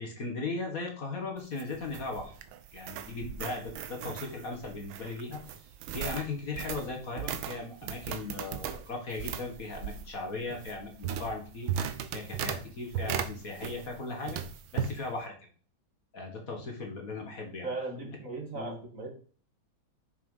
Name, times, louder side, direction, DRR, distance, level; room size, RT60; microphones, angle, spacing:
voice 1, 0.0-2.3 2.7-5.7 5.9-14.4 14.7-15.3 16.1-17.7 18.5-18.8, left 3 dB, 45° left, 2 dB, 2.0 m, -38 dB
sound 1, 1.4-14.0 14.3-15.0, right 8 dB, 80° right, 1.6 m, -37 dB
voice 2, 17.6-19.1, right 3 dB, 40° right, 2 dB, 2.2 m, -37 dB
6.7 x 5.8 x 5.6 m, 0.42 s
omnidirectional pair, 2.2 m